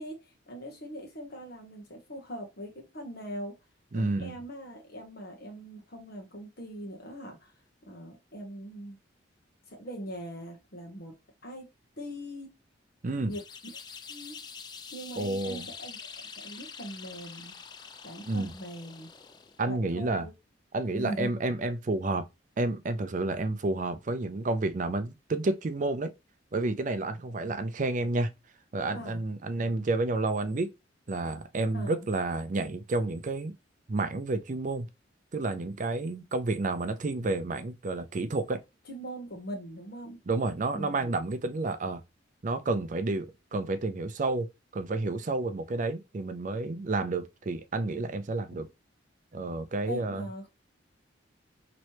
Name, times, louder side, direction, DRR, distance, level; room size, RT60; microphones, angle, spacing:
voice 1, 0.0-3.5 3.9-7.5 7.9-9.0 9.7-11.1 11.4-11.7 12.0-12.5 13.2-13.4 14.1-14.4 14.9-17.6 18.0-19.1 19.6-20.3 20.9-21.3 23.0-23.1 28.9-29.2 31.7-32.0 38.9-40.2 40.7-41.1 49.9-50.5, right 1 dB, 55° left, 1.1 m, -41 dB
voice 2, 3.9-4.4 13.0-13.3 15.2-15.7 18.3-18.5 19.6-20.3 20.7-22.2 22.6-26.1 26.5-28.3 28.7-30.7 31.1-33.5 33.9-34.9 35.3-38.6 40.3-42.0 42.4-44.5 44.7-48.7 49.3-50.3, right 2 dB, 40° right, 0.5 m, -30 dB
sound 1, 13.3-19.7, left 6 dB, 20° left, 0.3 m, -45 dB
3.1 x 3.0 x 2.8 m
head